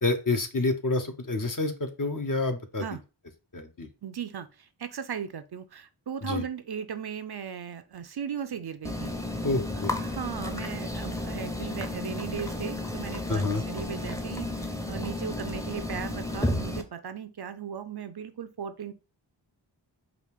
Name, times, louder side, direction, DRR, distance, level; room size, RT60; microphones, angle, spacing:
voice 1, 0.0-2.9 3.5-3.9 6.2-6.4 9.4-9.9 13.3-13.6, left 3 dB, 45° left, 6 dB, 0.8 m, -28 dB
voice 2, 4.0-9.1 9.8-18.9, right 7 dB, 55° right, 10 dB, 0.5 m, -37 dB
sound 1, 8.8-16.8, left 1 dB, 5° left, 0.7 m, -33 dB
5.0 x 2.4 x 3.4 m, 0.30 s
wide cardioid pair, 45°, 47 cm